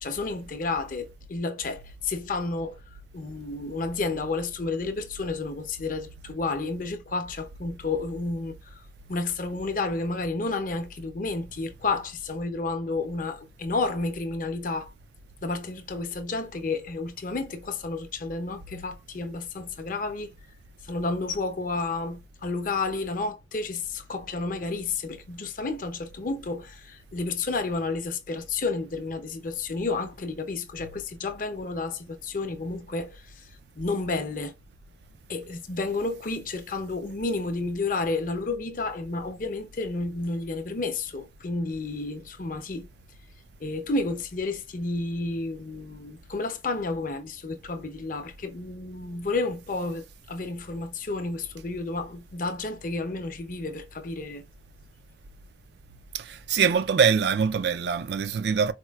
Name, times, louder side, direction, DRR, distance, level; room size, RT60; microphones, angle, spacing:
voice 1, 0.0-2.8 3.1-8.6 9.1-14.9 15.4-20.3 20.9-33.4 33.8-34.5 35.3-42.9 43.6-54.4, left 3 dB, 45° left, 0.6 m, -31 dB
voice 2, 56.1-58.7, right 6 dB, 60° right, 0.4 m, -23 dB
4.3 x 2.3 x 2.2 m
head